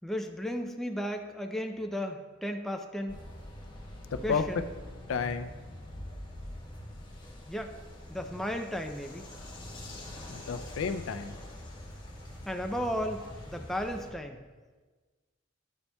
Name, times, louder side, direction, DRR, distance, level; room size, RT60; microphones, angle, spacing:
voice 1, 0.0-3.2 4.2-4.7 7.5-7.7 8.1-9.3 12.5-14.4, equal, ahead, 4 dB, 0.4 m, -34 dB
sound 1, 3.1-14.1, left 1 dB, 25° left, 1.1 m, -44 dB
voice 2, 4.1-4.4 5.1-5.5 10.3-11.4, left 5 dB, 80° left, 9 dB, 0.4 m, -31 dB
9.9 x 7.0 x 2.2 m, 1.4 s
head